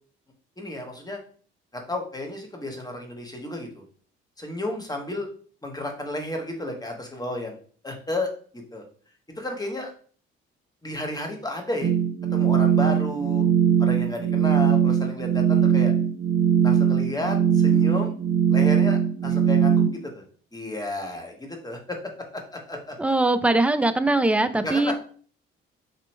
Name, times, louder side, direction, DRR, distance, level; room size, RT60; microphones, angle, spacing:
voice 1, 0.6-1.2 1.7-3.8 4.4-5.3 5.6-7.6 7.8-8.8 9.4-9.9 10.8-11.9 12.3-13.4 13.8-15.9 16.6-18.1 18.5-19.8 20.1-20.2 20.5-22.0 22.5-23.0 24.6-24.9, left 1 dB, 15° left, 2 dB, 1.3 m, -32 dB
sound 1, 11.8-19.9, right 8 dB, 45° right, 0.9 m, -20 dB
voice 2, 23.0-24.9, right 2 dB, 5° right, 10 dB, 0.4 m, -21 dB
4.0 x 2.9 x 3.3 m, 0.44 s
hypercardioid pair, 50°, 30 cm